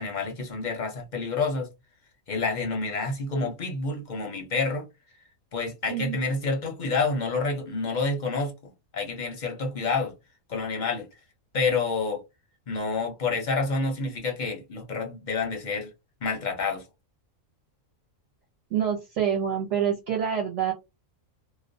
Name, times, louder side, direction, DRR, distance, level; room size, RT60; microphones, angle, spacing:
voice 1, 0.0-1.7 2.3-4.9 5.5-8.5 8.9-10.1 10.5-11.1 11.5-12.2 12.7-15.9 16.2-16.8, left 4 dB, 50° left, 0.6 m, -28 dB
voice 2, 18.7-20.7, right 8 dB, 65° right, 0.9 m, -26 dB
2.4 x 2.1 x 2.5 m
omnidirectional pair, 1.5 m